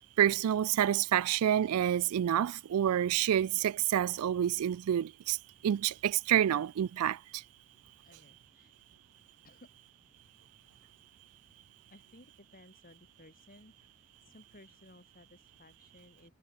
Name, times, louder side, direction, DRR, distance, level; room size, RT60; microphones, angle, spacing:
voice 1, 0.2-5.4 5.6-7.2, right 10 dB, 90° right, 0.3 m, -28 dB
voice 2, 8.0-8.7 9.4-9.7 11.9-16.3, left 1 dB, 40° left, 6.9 m, -58 dB
head